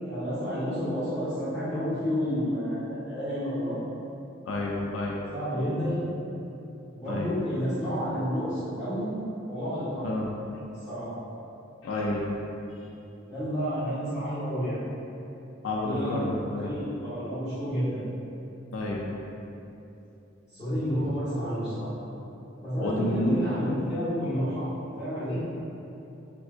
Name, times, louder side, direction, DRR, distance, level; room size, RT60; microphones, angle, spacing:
voice 1, 0.0-3.8 5.3-6.0 6.9-9.1 9.5-10.1 10.7-11.1 13.2-14.8 15.7-18.0 20.5-21.9 22.6-24.7 25.0-25.4, equal, 15° left, -20 dB, 1.3 m, -30 dB
voice 2, 4.5-5.2 7.1-7.3 10.0-10.3 11.8-12.3 15.6-16.7 18.7-19.1 22.8-23.4, left 1 dB, 85° left, -3 dB, 0.4 m, -29 dB
3.4 x 2.7 x 2.4 m, 2.8 s
head